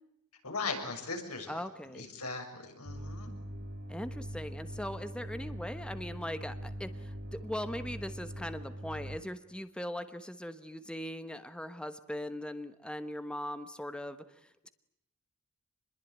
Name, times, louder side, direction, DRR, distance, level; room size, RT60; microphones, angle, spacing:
voice 1, 0.4-1.5 1.9-3.3, left 4 dB, 90° left, 4 dB, 6.8 m, -38 dB
voice 2, 1.5-2.0 3.9-14.7, equal, 5° left, 10 dB, 1.1 m, -40 dB
sound 1, 2.8-9.2, equal, 50° right, 3.1 m, -42 dB
27.5 x 21.5 x 9.2 m, 0.83 s
head